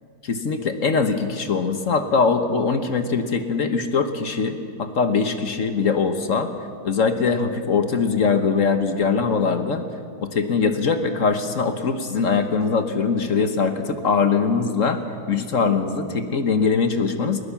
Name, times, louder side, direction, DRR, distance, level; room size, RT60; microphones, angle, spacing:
voice 1, 0.2-6.5 6.8-9.8 10.2-15.0 15.3-17.4, left 5 dB, 45° left, 8 dB, 1.2 m, -22 dB
20.5 x 20.0 x 7.2 m, 2.2 s
omnidirectional pair, 2.3 m